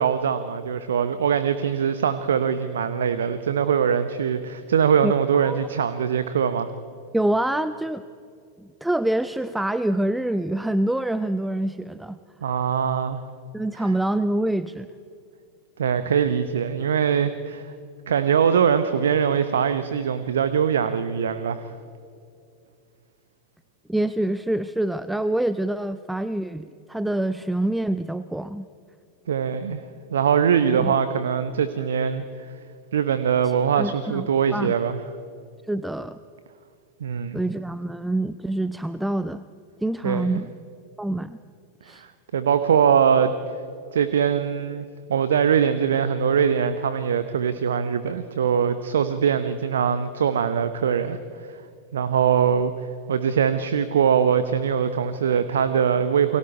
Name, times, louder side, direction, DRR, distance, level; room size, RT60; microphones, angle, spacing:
voice 1, 0.0-6.7 12.4-13.2 15.8-17.7 18.1-21.7 29.3-29.8 30.1-32.5 32.9-35.0 37.0-37.4 40.0-40.4 41.9-43.3 43.9-51.6 51.9-56.4, right 7 dB, 65° right, 12 dB, 0.9 m, -22 dB
voice 2, 7.1-8.0 8.6-12.2 13.5-14.9 23.9-28.7 30.8-30.9 33.7-34.3 34.5-34.7 35.7-36.2 37.3-39.4 39.8-40.5 41.0-41.4 41.8-42.0, right 1 dB, 5° right, 14 dB, 0.6 m, -26 dB
29.5 x 22.5 x 4.4 m, 2.5 s
figure-of-eight pair, 90°, 0 cm